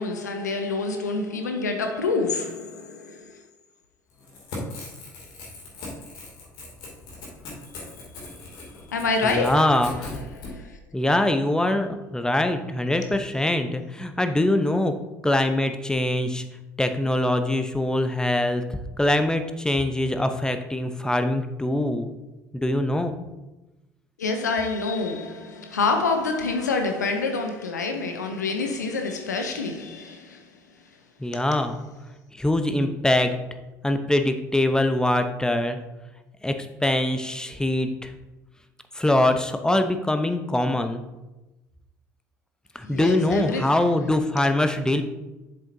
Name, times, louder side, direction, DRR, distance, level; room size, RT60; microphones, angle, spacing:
voice 1, 0.0-3.3 8.9-9.8 10.4-10.7 24.2-30.4 31.3-31.4 42.8-43.7, left 3 dB, 85° left, 0.6 m, -27 dB
Crackle / Tearing, 4.1-10.5, left 3 dB, 65° left, 2.6 m, -39 dB
voice 2, 9.2-10.2 10.9-14.9 15.2-16.4 16.8-22.1 22.5-23.2 31.2-31.8 32.3-33.3 33.8-35.8 36.4-38.1 38.9-41.0 42.7-45.0, left 1 dB, 10° left, 0.8 m, -23 dB
7.5 x 7.4 x 2.7 m
hypercardioid pair, 60°, 9 cm